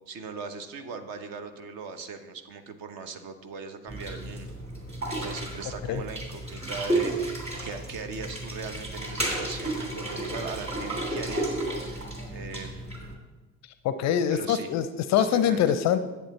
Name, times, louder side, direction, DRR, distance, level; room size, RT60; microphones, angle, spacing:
voice 1, 0.1-4.5 5.1-13.0 14.3-14.7 15.1-15.6, right 5 dB, 45° right, 8 dB, 1.1 m, -39 dB
sound 1, 3.9-13.1, right 1 dB, 15° right, 2.8 m, -32 dB
voice 2, 13.8-16.0, left 9 dB, 35° left, 12 dB, 0.5 m, -24 dB
10.5 x 8.4 x 4.2 m, 1.2 s
figure-of-eight pair, 65°, 49 cm